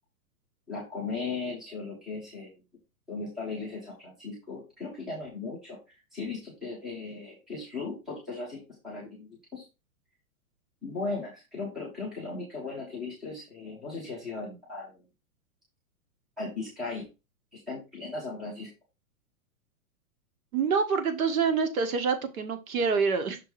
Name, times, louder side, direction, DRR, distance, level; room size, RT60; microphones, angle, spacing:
voice 1, 0.7-2.5 3.1-5.8 6.1-9.6 10.8-15.0 16.4-17.1 17.5-18.7, left 3 dB, ahead, -5 dB, 0.5 m, -37 dB
voice 2, 20.5-23.4, right 5 dB, 75° right, 7 dB, 1.7 m, -26 dB
6.1 x 3.7 x 4.7 m, 0.26 s
hypercardioid pair, 175°, 43 cm